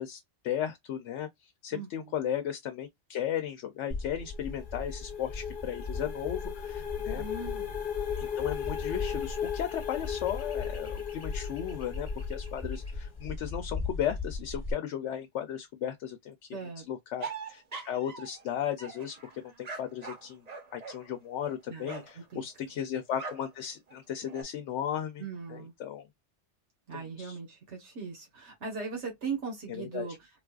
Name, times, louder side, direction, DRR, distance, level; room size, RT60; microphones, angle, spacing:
voice 1, 0.0-7.2 8.2-16.6 16.9-20.4 20.7-25.2 25.5-26.0 27.2-27.4 29.7-30.1, left 10 dB, 85° left, 0.9 m, -35 dB
voice 2, 1.7-2.2 7.1-7.8 16.5-16.8 21.7-22.7 25.2-25.7 26.9-30.3, right 5 dB, 85° right, 1.6 m, -39 dB
sound 1, 3.9-14.7, left 3 dB, 20° left, 1.1 m, -38 dB
sound 2, 4.2-12.8, left 8 dB, 50° left, 0.7 m, -37 dB
sound 3, 17.2-18.4 18.8-22.2 23.1-23.5 23.9-24.4, right 4 dB, 40° right, 0.9 m, -42 dB
3.8 x 2.4 x 2.3 m
omnidirectional pair, 1.2 m